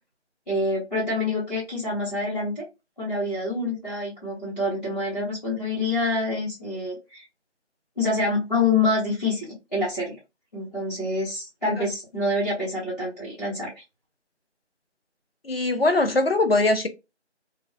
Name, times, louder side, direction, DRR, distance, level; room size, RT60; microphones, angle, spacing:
voice 1, 0.5-2.6 3.0-7.3 8.0-10.1 10.5-13.7, left 2 dB, 35° left, 1.0 m, -26 dB
voice 2, 15.4-16.9, left 2 dB, 55° left, 0.5 m, -21 dB
2.4 x 2.4 x 2.2 m
figure-of-eight pair, 175°, 35 cm